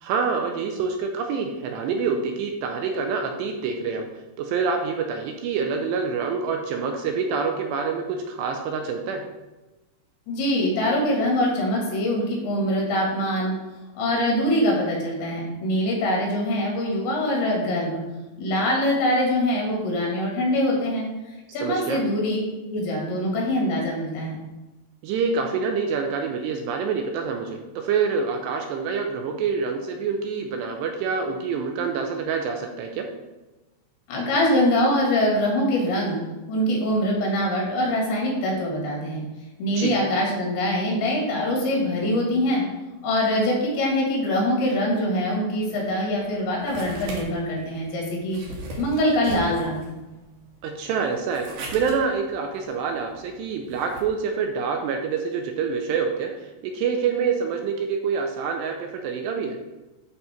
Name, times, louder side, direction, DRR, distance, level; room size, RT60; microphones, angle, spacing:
voice 1, 0.0-4.0 4.4-9.2 21.6-22.0 25.0-33.1 39.7-40.0 50.6-51.5 51.7-59.6, right 5 dB, 80° right, 4 dB, 2.7 m, -26 dB
voice 2, 10.3-13.6 14.0-18.0 18.4-21.1 21.5-22.4 22.7-24.3 34.1-36.2 36.5-39.2 39.6-42.6 43.0-48.4 48.8-49.9, left 1 dB, 75° left, -2 dB, 4.4 m, -23 dB
sound 1, 45.8-54.0, right 1 dB, 60° right, 2.4 m, -39 dB
11.5 x 4.2 x 4.4 m, 1.1 s
omnidirectional pair, 5.3 m